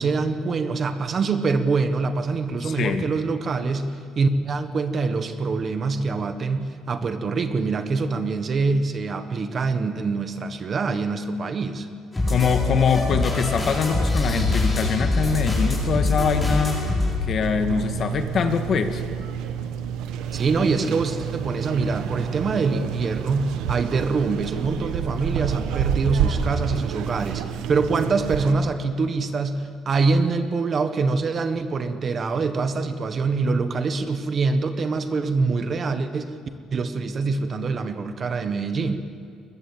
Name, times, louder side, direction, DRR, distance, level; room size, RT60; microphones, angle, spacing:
voice 1, 0.0-11.9 20.3-36.3 36.7-39.0, right 4 dB, 35° right, 9 dB, 1.4 m, -24 dB
voice 2, 2.6-3.1 12.3-16.8 17.2-19.0, left 6 dB, 45° left, 8 dB, 1.7 m, -23 dB
sound 1, 12.1-17.1, left 2 dB, 10° left, 6.5 m, -24 dB
sound 2, 17.4-28.5, right 8 dB, 90° right, 1.3 m, -29 dB
22.0 x 21.0 x 8.8 m, 2.3 s
cardioid pair, 150°, 0 cm